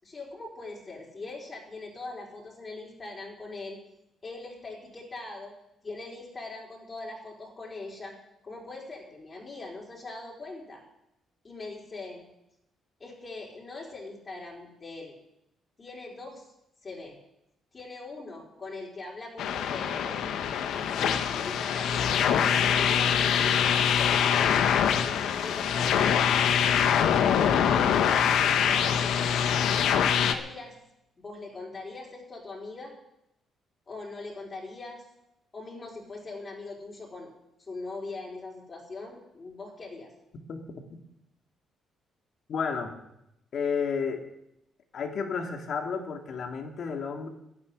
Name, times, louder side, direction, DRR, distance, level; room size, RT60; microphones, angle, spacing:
voice 1, 0.0-3.8 4.2-5.5 5.8-8.1 8.4-10.8 11.4-12.3 13.0-15.1 15.8-16.5 16.8-17.2 17.7-20.2 20.7-24.4 24.9-26.5 27.6-29.2 30.2-30.8 31.2-32.9 33.9-35.1 35.5-37.3 37.6-40.1, left 3 dB, 35° left, -3 dB, 4.6 m, -41 dB
sound 1, 19.4-30.3, left 8 dB, 80° left, 1.2 m, -24 dB
voice 2, 42.5-43.0 43.5-44.2 44.9-47.3, left 6 dB, 60° left, 4 dB, 2.3 m, -31 dB
11.0 x 9.8 x 10.0 m, 0.82 s
cardioid pair, 90°, 0 cm